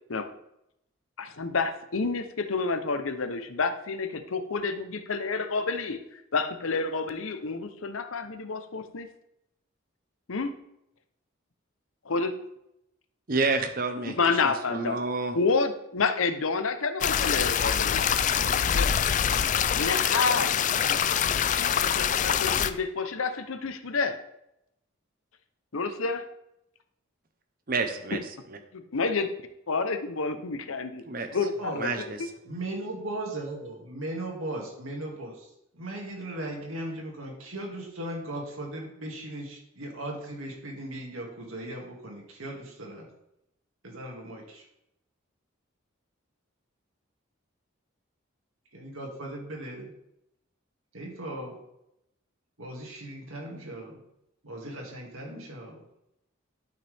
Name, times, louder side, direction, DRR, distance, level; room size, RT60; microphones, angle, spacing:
voice 1, 1.2-9.1 10.3-10.5 12.1-12.3 14.0-15.0 15.3-18.1 18.4-18.9 19.8-20.6 20.9-21.0 21.5-24.2 25.7-26.3 28.7-29.3 29.7-31.0 31.3-32.1, left 4 dB, 80° left, 9 dB, 0.8 m, -29 dB
voice 2, 13.3-15.3 27.7-28.2 28.5-28.6 31.1-31.3 31.8-32.3, right 3 dB, 45° right, 6 dB, 0.8 m, -29 dB
sound 1, 17.0-22.7, left 8 dB, 35° left, 0.3 m, -25 dB
voice 3, 31.5-32.0 32.4-43.1 43.8-44.6 48.7-49.9 50.9-51.5 52.6-54.0 54.4-55.8, right 1 dB, 85° right, 0 dB, 2.3 m, -38 dB
11.5 x 5.9 x 3.5 m, 0.82 s
head